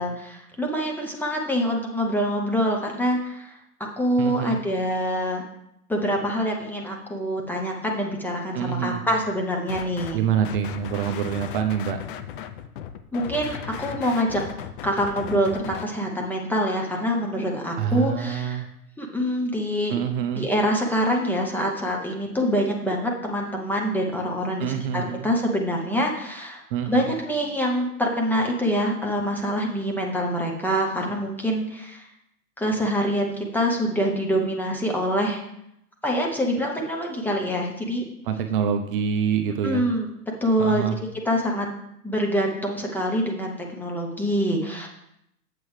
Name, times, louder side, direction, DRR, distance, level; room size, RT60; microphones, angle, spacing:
voice 1, 0.0-3.6 4.0-5.4 5.9-10.2 13.1-14.4 14.8-18.6 19.0-19.9 20.4-32.1 32.6-35.4 36.0-38.0 39.6-40.1 40.4-40.8 41.2-41.7 42.0-44.9, equal, 5° left, -1 dB, 0.7 m, -25 dB
voice 2, 4.2-4.6 8.5-9.1 10.1-12.0 17.8-18.7 19.9-20.5 24.6-25.3 26.7-27.1 38.2-39.9 40.6-41.0, right 8 dB, 35° right, 6 dB, 0.6 m, -26 dB
sound 1, 9.7-10.2 10.4-15.8, left 9 dB, 35° left, 0.5 m, -36 dB
7.8 x 7.6 x 3.2 m, 0.79 s
hypercardioid pair, 115°, 46 cm